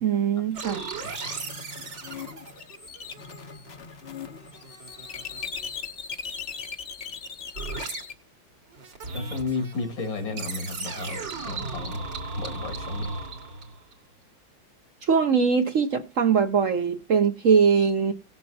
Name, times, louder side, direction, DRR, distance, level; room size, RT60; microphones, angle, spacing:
voice 1, 0.0-0.8 15.0-18.1, right 6 dB, 55° right, 1.0 m, -21 dB
sound 1, 0.6-3.8 4.1-5.6 7.6-8.0 8.7-13.9, right 3 dB, 70° right, 2.7 m, -36 dB
sound 2, 1.1-8.1, left 6 dB, 45° left, 0.9 m, -39 dB
voice 2, 9.1-12.0 12.3-13.1, left 4 dB, 80° left, 3.1 m, -33 dB
18.0 x 7.5 x 2.8 m
omnidirectional pair, 2.1 m